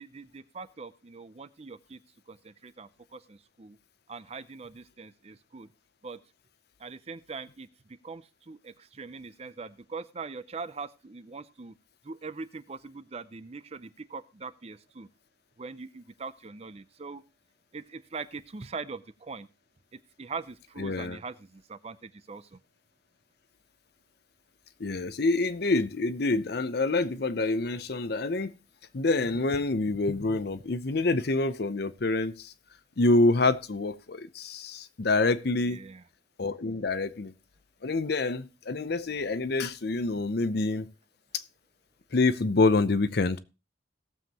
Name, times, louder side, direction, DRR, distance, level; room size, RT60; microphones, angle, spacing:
voice 1, 0.0-2.0 2.3-3.8 4.1-5.7 6.0-6.2 6.8-11.7 12.0-15.1 15.6-17.2 17.7-19.5 20.2-22.6 35.6-36.0, right 4 dB, 35° right, 0.5 m, -42 dB
voice 2, 20.8-21.2 24.8-28.5 28.9-32.5 33.0-35.8 36.4-37.3 37.8-40.9 41.3-41.4 42.1-43.4, left 3 dB, 55° left, 0.7 m, -27 dB
18.0 x 7.3 x 2.9 m
head